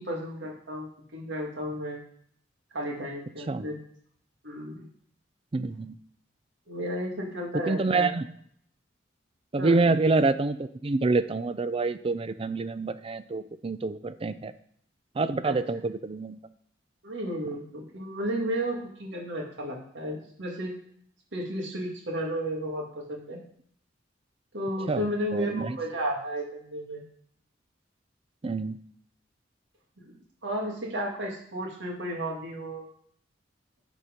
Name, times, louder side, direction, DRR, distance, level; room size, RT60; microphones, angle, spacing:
voice 1, 0.0-2.0 2.7-3.8 4.4-4.9 6.7-8.1 9.6-9.8 15.4-15.6 17.0-20.7 21.3-23.4 24.5-27.0 30.0-30.2 30.4-32.8, equal, 80° right, -1 dB, 2.2 m, -33 dB
voice 2, 5.5-6.0 7.5-8.3 9.5-14.5 15.2-16.4 24.9-25.8 28.4-28.8, right 3 dB, 30° right, 13 dB, 0.4 m, -27 dB
11.0 x 4.4 x 5.2 m, 0.63 s
head